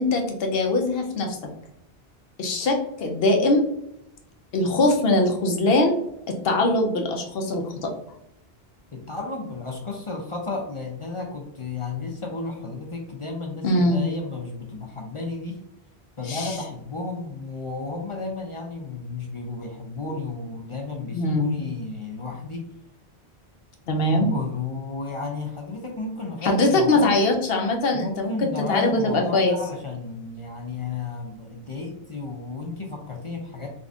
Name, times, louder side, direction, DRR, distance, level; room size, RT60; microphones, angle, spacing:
voice 1, 0.0-1.3 2.4-3.7 4.5-6.0 6.4-7.9 13.6-14.0 16.3-16.5 21.1-21.6 23.9-24.3 26.4-28.3 28.7-29.6, left 2 dB, 70° left, 3 dB, 0.9 m, -22 dB
voice 2, 8.9-15.6 16.2-22.7 24.1-27.4 27.9-33.7, left 3 dB, 40° left, 1 dB, 0.5 m, -33 dB
3.7 x 2.5 x 3.5 m, 0.79 s
omnidirectional pair, 1.1 m